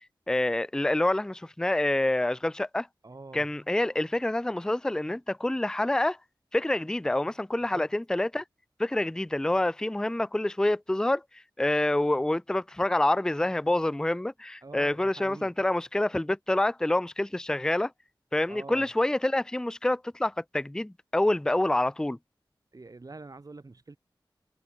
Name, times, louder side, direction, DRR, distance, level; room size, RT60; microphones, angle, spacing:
voice 1, 0.3-2.9 3.3-6.2 6.5-8.4 8.8-11.2 11.6-17.9 18.3-22.2, left 1 dB, 10° left, 0.4 m, -27 dB
voice 2, 3.0-3.5 7.7-7.9 14.6-15.5 18.5-18.9 22.7-24.0, right 3 dB, 45° right, 1.7 m, -45 dB
wide cardioid pair, 75°, 9 cm